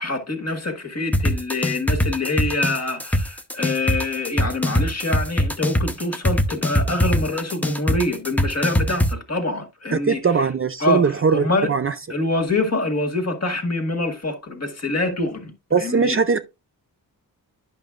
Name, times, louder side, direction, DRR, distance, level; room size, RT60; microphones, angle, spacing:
voice 1, 0.0-10.2 10.8-11.7 12.1-16.2, left 2 dB, 45° left, 1.8 m, -25 dB
sound 1, 1.1-9.1, left 1 dB, 5° left, 0.7 m, -20 dB
voice 2, 9.9-11.9 15.7-16.4, right 5 dB, 35° right, 0.5 m, -20 dB
10.5 x 6.0 x 2.5 m
wide cardioid pair, 110°, 37 cm